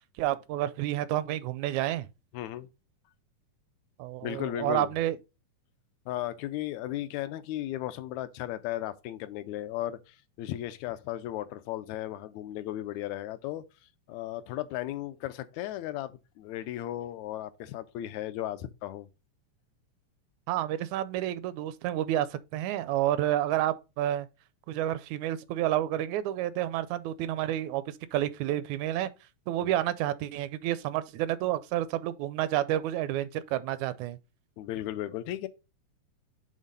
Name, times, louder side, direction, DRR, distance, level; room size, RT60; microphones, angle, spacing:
voice 1, 0.2-2.1 4.0-5.2 20.5-24.3 24.7-29.1 29.5-34.2, right 13 dB, 85° right, 1.9 m, -30 dB
voice 2, 2.3-2.7 4.2-4.9 6.1-13.6 14.1-19.1 29.6-29.7 34.6-35.5, left 13 dB, 80° left, 1.9 m, -35 dB
6.4 x 3.7 x 5.3 m
omnidirectional pair, 3.3 m